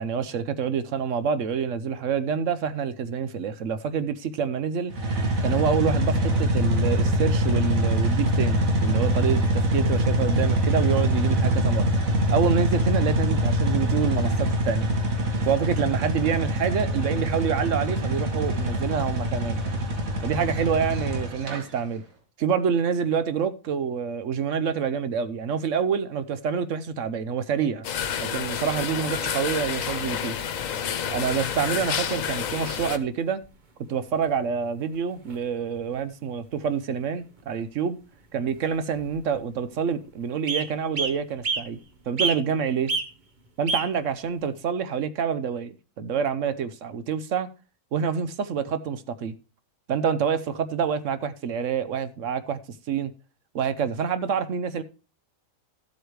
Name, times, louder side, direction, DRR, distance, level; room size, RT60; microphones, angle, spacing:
voice 1, 0.0-4.9 5.4-11.9 12.3-14.9 15.4-19.6 20.2-22.0 22.4-27.9 28.2-30.4 31.1-33.4 33.9-38.0 38.3-41.8 42.1-42.9 43.6-47.5 47.9-49.3 49.9-52.6 52.9-53.1 53.5-54.8, right 7 dB, 70° right, 1.1 m, -27 dB
sound 1, 4.9-21.6, right 1 dB, 85° right, 2.2 m, -24 dB
sound 2, 27.8-33.0, left 8 dB, 80° left, 1.2 m, -29 dB
sound 3, 31.1-31.9 33.1-33.2 33.4-33.5 34.2-34.5 34.8-34.9 35.2-35.4 35.7-36.0 36.9-37.0 37.4-37.5 38.6-38.7 38.9-39.4 39.9-40.0 40.5-40.7 40.9-41.7 42.2-42.6 42.9-43.1 43.7-43.9 44.6-44.7, right 4 dB, 40° right, 1.1 m, -28 dB
13.0 x 8.0 x 3.1 m
omnidirectional pair, 1.4 m